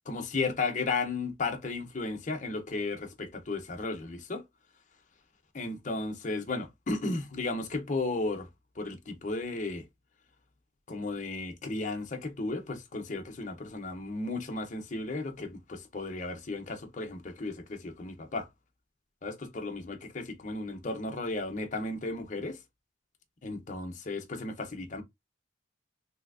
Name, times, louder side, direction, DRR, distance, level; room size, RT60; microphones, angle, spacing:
voice 1, 0.1-4.4 5.5-8.5 8.8-9.8 10.9-18.5 19.2-22.6 23.4-25.0, left 3 dB, 40° left, 0.7 m, -34 dB
3.3 x 2.7 x 2.5 m
head